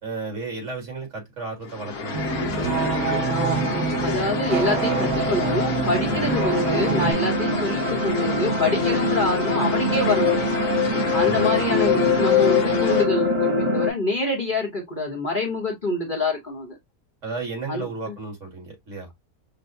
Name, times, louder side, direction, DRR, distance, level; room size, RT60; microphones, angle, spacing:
voice 1, 0.0-2.7 6.1-6.4 11.2-11.5 17.2-19.1, right 3 dB, 50° right, 2.0 m, -33 dB
sound 1, 1.6-13.0, left 5 dB, 75° left, 1.5 m, -30 dB
sound 2, 2.1-7.1, right 4 dB, 70° right, 1.3 m, -26 dB
sound 3, 2.5-13.9, left 3 dB, 30° right, 0.8 m, -24 dB
voice 2, 3.3-10.4 11.1-16.8 17.7-18.2, left 2 dB, 35° left, 1.1 m, -26 dB
5.7 x 2.2 x 2.6 m
omnidirectional pair, 1.6 m